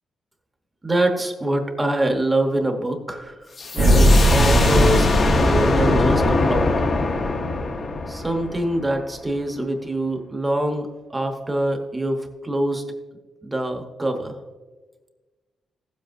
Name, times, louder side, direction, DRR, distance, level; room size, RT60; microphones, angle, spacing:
voice 1, 0.8-3.4 3.7-6.7 8.1-12.8 13.4-14.4, right 1 dB, 15° right, 4 dB, 1.0 m, -24 dB
sound 1, 3.6-9.1, left 3 dB, 40° left, 0.8 m, -22 dB
sound 2, 3.8-7.8, right 1 dB, 90° right, 1.3 m, -19 dB
16.0 x 7.6 x 2.6 m, 1.3 s
wide cardioid pair, 155°, 0 cm